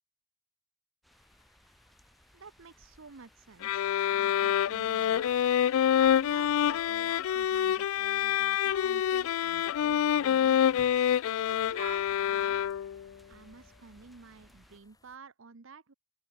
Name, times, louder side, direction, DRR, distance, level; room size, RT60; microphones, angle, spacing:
sound 1, 1.0-14.8, equal, ahead, 2.2 m, -62 dB
sound 2, 1.1-15.2, left 1 dB, 15° left, 7.5 m, -66 dB
voice 1, 2.3-5.3 6.0-10.8 11.5-12.7 13.3-15.9, right 5 dB, 65° right, 0.8 m, -51 dB
sound 3, 3.6-13.1, left 9 dB, 75° left, 0.3 m, -27 dB
open air
head